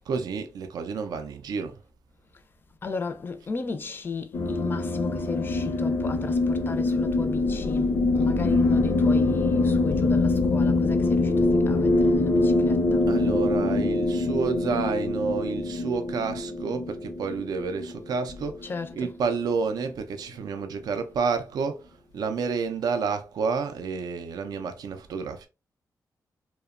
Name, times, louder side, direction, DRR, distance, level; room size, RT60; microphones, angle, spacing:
voice 1, 0.1-1.8 13.1-25.5, right 5 dB, 75° right, 0.4 m, -30 dB
voice 2, 2.8-13.0 18.6-19.2, left 4 dB, 30° left, 0.4 m, -34 dB
sound 1, 4.3-18.9, left 2 dB, 80° left, 0.5 m, -24 dB
2.8 x 2.1 x 2.3 m
wide cardioid pair, 135°, 7 cm